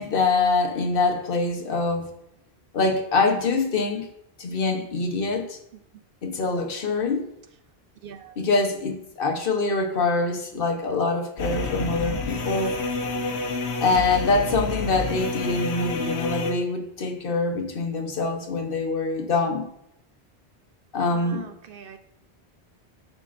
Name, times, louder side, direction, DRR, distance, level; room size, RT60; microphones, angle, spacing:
voice 1, 0.0-2.1 2.7-4.1 4.4-5.6 6.2-7.3 8.4-12.8 13.8-19.7 20.9-21.5, left 3 dB, 60° left, 4 dB, 1.1 m, -24 dB
voice 2, 5.7-6.0 8.0-8.5 21.1-22.0, right 7 dB, 65° right, 7 dB, 0.8 m, -44 dB
sound 1, 11.4-16.5, left 3 dB, 85° left, 1.1 m, -28 dB
13.5 x 5.0 x 2.5 m, 0.78 s
omnidirectional pair, 1.1 m